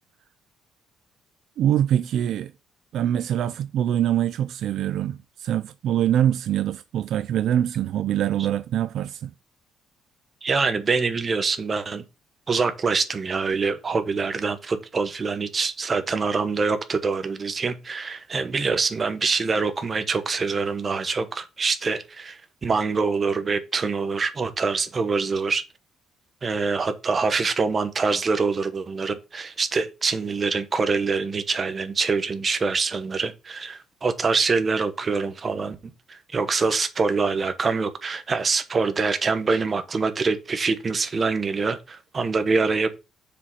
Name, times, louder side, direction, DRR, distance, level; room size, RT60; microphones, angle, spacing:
voice 1, 1.6-2.5 2.9-9.3, right 10 dB, 60° right, 0.4 m, -24 dB
voice 2, 10.4-12.0 12.5-25.6 26.4-35.8 36.1-42.9, right 4 dB, 25° right, 1.0 m, -25 dB
7.1 x 5.0 x 5.5 m
cardioid pair, 160°, 0 cm